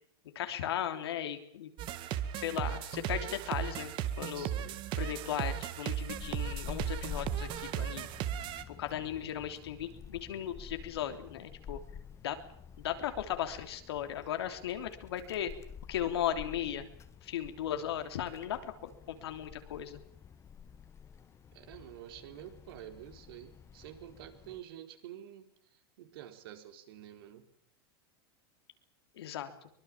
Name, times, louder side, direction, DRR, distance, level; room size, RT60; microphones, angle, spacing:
voice 1, 0.4-1.7 2.4-4.5 4.9-8.1 8.7-11.8 12.2-12.4 12.8-15.5 15.9-16.9 17.2-20.0 29.1-29.7, left 10 dB, 85° left, 7 dB, 3.4 m, -37 dB
sound 1, 1.8-8.6, right 10 dB, 40° right, 1.9 m, -36 dB
voice 2, 4.3-4.8 21.5-25.5 26.0-27.4, right 11 dB, 70° right, 7 dB, 4.1 m, -49 dB
Wind, 6.1-24.6, left 7 dB, 20° left, 1.7 m, -49 dB
24.0 x 21.0 x 7.5 m, 0.67 s
supercardioid pair, 140°, 13 cm